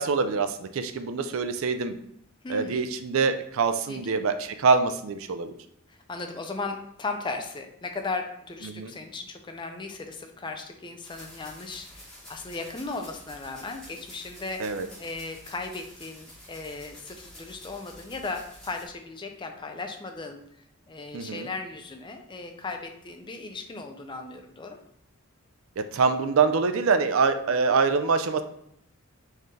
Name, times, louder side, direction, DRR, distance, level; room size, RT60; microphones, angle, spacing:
voice 1, 0.0-1.9 2.5-5.5 8.6-8.9 14.6-14.9 21.1-21.5 25.8-28.4, right 4 dB, 65° right, 9 dB, 0.4 m, -25 dB
voice 2, 2.4-2.9 3.9-4.2 5.9-14.7 15.0-24.8, left 3 dB, 20° left, 5 dB, 0.4 m, -37 dB
sound 1, 11.0-18.9, equal, 5° left, 1.5 m, -49 dB
4.5 x 3.2 x 3.5 m, 0.72 s
head